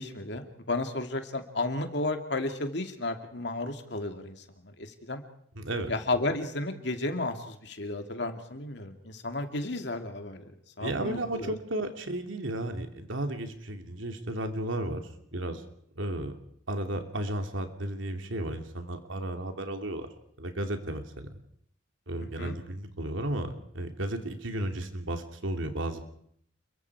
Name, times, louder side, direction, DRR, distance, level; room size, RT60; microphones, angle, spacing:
voice 1, 0.0-5.2 5.9-10.5 10.8-11.6 22.2-22.6, left 2 dB, 60° left, 6 dB, 2.6 m, -33 dB
voice 2, 5.5-5.9 10.8-15.6 16.0-16.3 16.7-20.1 20.4-21.3 22.1-26.0, right 1 dB, 80° right, 6 dB, 2.9 m, -34 dB
29.0 x 23.0 x 4.9 m, 0.66 s
head